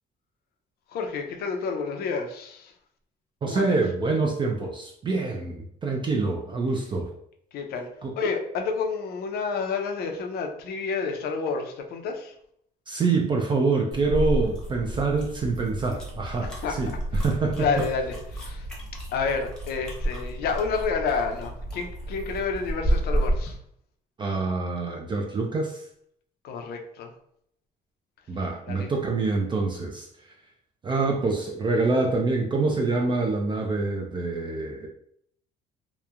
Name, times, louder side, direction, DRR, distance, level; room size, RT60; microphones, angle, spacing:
voice 1, 0.9-2.7 3.4-3.8 7.5-7.9 8.2-12.3 16.4-16.8 17.1-17.2 17.5-18.7 19.1-23.6 26.4-27.1 28.7-28.9, left 5 dB, 65° left, 4 dB, 0.5 m, -29 dB
voice 2, 3.4-7.1 8.0-8.1 12.9-17.7 24.2-25.8 28.3-30.1 30.8-34.9, right 3 dB, 30° right, 1 dB, 0.4 m, -26 dB
sound 1, 13.9-23.6, right 1 dB, 5° left, 0.8 m, -31 dB
2.9 x 2.1 x 2.4 m, 0.69 s
cardioid pair, 110°, 17 cm